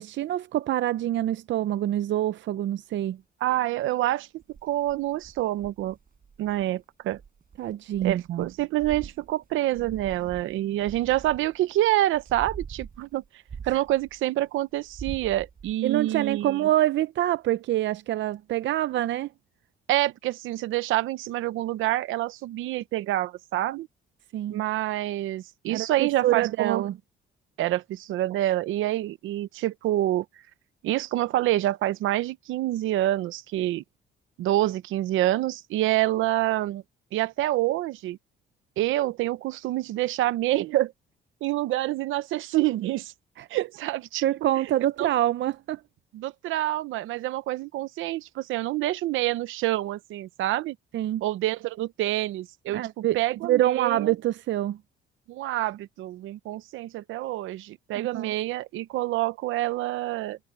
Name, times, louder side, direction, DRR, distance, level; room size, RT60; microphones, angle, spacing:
voice 1, 0.0-3.2 7.6-8.5 13.6-13.8 15.8-19.3 24.3-24.6 25.7-26.9 43.4-43.5 44.2-45.8 50.9-51.2 52.7-54.8 58.0-58.3, right 13 dB, 65° right, 0.6 m, -26 dB
voice 2, 3.4-4.3 4.6-6.0 6.4-7.2 8.0-13.2 13.7-16.6 19.9-23.9 24.5-26.9 27.6-30.2 30.8-33.8 34.4-36.8 37.1-38.2 38.8-40.9 41.4-43.1 43.5-44.3 45.0-45.1 46.1-50.7 51.2-54.1 55.3-60.4, right 15 dB, 90° right, 0.9 m, -27 dB
sound 1, 4.4-6.7 7.1-11.7 12.1-14.4 14.8-15.7, right 6 dB, 45° right, 7.7 m, -43 dB
cardioid pair, 90°, 20 cm